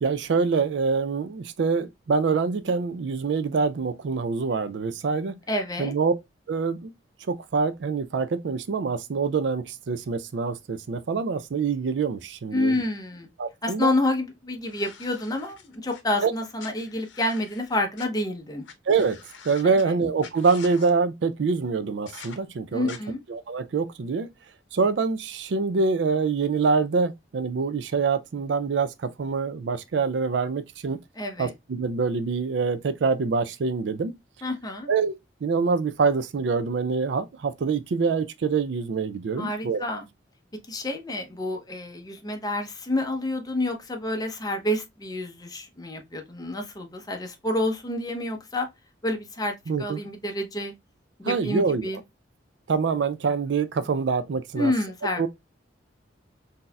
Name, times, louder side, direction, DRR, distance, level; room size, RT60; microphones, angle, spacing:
voice 1, 0.0-5.4 5.8-6.1 6.5-6.9 7.3-12.8 13.4-13.9 16.2-16.3 18.9-19.2 19.4-23.0 23.3-24.3 24.7-31.0 31.4-34.1 34.9-35.1 35.4-39.8 49.7-50.0 51.2-51.9 52.7-54.7 55.2-55.3, right 5 dB, 70° right, 0.4 m, -25 dB
voice 2, 5.5-5.9 12.5-13.3 13.6-18.6 19.6-19.8 22.7-23.2 31.2-31.5 34.4-34.9 39.4-40.0 40.7-48.7 49.0-50.7 51.2-52.0 54.5-55.3, left 1 dB, 20° left, 0.7 m, -28 dB
sound 1, 14.6-16.0 16.6-18.1 18.6-18.7 19.0-19.8 20.2-20.9 22.1-22.4 22.9-23.0, left 6 dB, 85° left, 0.7 m, -45 dB
3.9 x 2.7 x 2.3 m
head